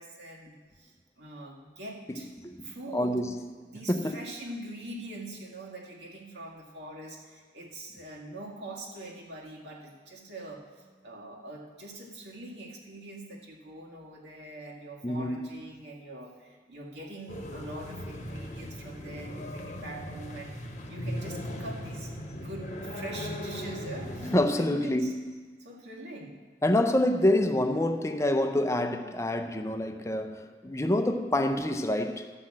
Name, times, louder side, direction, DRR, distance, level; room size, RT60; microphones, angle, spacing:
voice 1, 0.0-2.3 2.6-3.3 3.6-25.1 25.6-26.4, right 1 dB, 75° right, 1.9 m, -43 dB
voice 2, 2.1-2.6 2.9-3.3 3.9-4.3 15.0-15.5 24.3-25.2 26.6-32.3, left 1 dB, 15° left, 0.5 m, -27 dB
sound 1, 17.3-24.5, equal, 40° left, 1.1 m, -38 dB
12.5 x 5.9 x 7.5 m
head